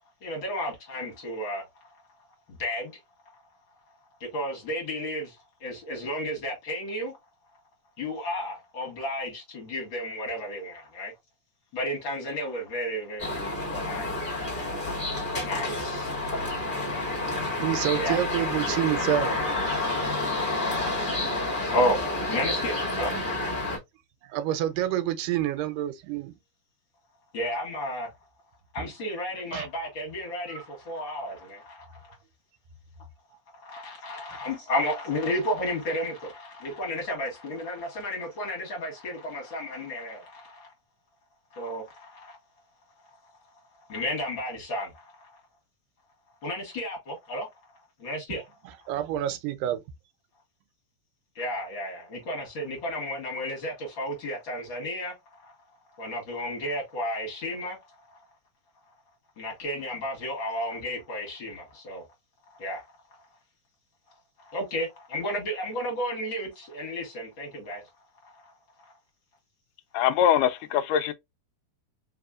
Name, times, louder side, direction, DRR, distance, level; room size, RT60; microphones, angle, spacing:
voice 1, 0.2-1.7 2.5-2.9 4.2-7.2 8.0-11.1 11.7-14.8 15.4-16.1 17.9-18.2 21.7-23.1 27.3-28.1 28.7-32.2 33.6-40.7 41.5-42.4 43.9-45.3 46.4-47.5 48.0-48.4 51.4-55.5 56.0-57.8 59.4-62.0 62.6-62.8 64.4-67.8 68.2-68.5 68.8-68.9, left 1 dB, 45° left, 2.1 m, -33 dB
sound 1, 13.2-23.8, left 2 dB, 20° left, 1.9 m, -29 dB
voice 2, 17.4-20.3 20.8-21.1 24.2-26.4 28.8-28.9 29.5-29.7 48.3-48.4 48.9-49.8, right 12 dB, 85° right, 2.3 m, -29 dB
voice 3, 69.9-71.1, left 9 dB, 85° left, 2.1 m, -23 dB
4.8 x 3.2 x 2.4 m
omnidirectional pair, 3.7 m